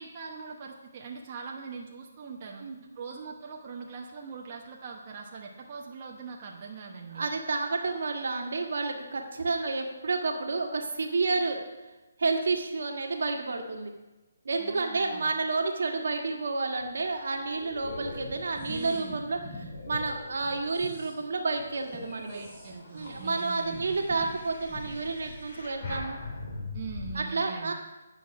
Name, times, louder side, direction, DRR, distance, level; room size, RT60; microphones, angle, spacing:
voice 1, 0.0-2.6 2.9-7.3 14.6-15.3 18.7-19.3 22.3-24.1 26.7-27.7, right 5 dB, 35° right, -1 dB, 1.0 m, -42 dB
voice 2, 7.1-11.6 12.2-13.9 14.4-22.4 22.9-26.2 27.1-27.7, right 3 dB, 70° right, 3 dB, 1.5 m, -30 dB
sound 1, 16.7-21.0 21.5-27.1, left 2 dB, 50° left, 3.1 m, -43 dB
sound 2, 18.2-20.0 20.4-25.5, equal, 10° left, 2.5 m, -45 dB
9.6 x 5.7 x 5.8 m, 1.1 s
hypercardioid pair, 160°, 0 cm